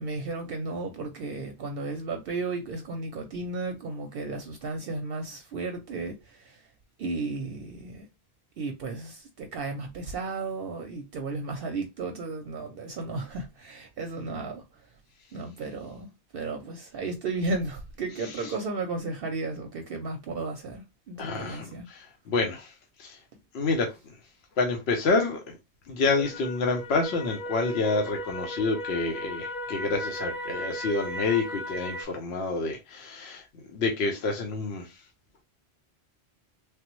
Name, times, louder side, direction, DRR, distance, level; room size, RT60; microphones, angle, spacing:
voice 1, 0.0-6.7 7.0-8.1 8.6-14.9 15.3-21.8, right 3 dB, 65° right, 0.7 m, -34 dB
voice 2, 21.2-23.2 23.5-24.0 24.6-25.6 25.9-33.5 33.7-35.0, left 3 dB, 75° left, 0.9 m, -28 dB
sound 1, 26.1-32.0, equal, 50° left, 0.7 m, -36 dB
3.3 x 2.0 x 2.9 m
omnidirectional pair, 1.1 m